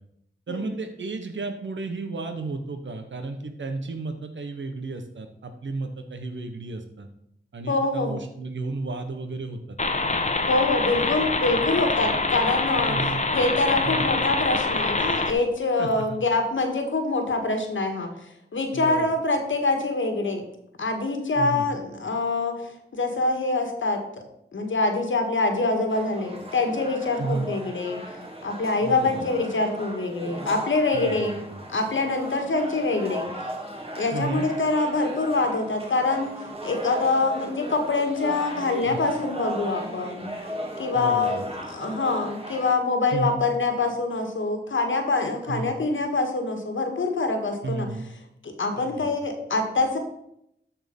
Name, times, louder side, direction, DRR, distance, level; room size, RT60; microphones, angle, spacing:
voice 1, 0.5-7.1 7.5-9.8 12.9-13.2 13.8-14.1 15.8-16.2 18.7-19.1 21.4-21.7 27.2-27.5 28.8-29.2 30.9-31.6 34.1-34.5 38.8-39.0 40.9-41.5 43.1-43.4 45.5-45.7 47.6-48.1 48.8-49.1, right 3 dB, 75° right, 6 dB, 1.1 m, -33 dB
voice 2, 7.7-8.2 10.5-13.0 13.3-20.4 20.8-24.2 24.5-28.0 28.4-31.4 31.7-33.3 34.0-40.3 40.8-41.4 41.7-47.9 48.4-50.0, left 3 dB, 85° left, 5 dB, 1.7 m, -25 dB
sound 1, 9.8-15.3, left 3 dB, 35° left, 1.0 m, -25 dB
sound 2, 25.9-42.8, right 1 dB, 30° right, 2.3 m, -37 dB
13.0 x 4.5 x 5.3 m, 0.76 s
wide cardioid pair, 70°, 20 cm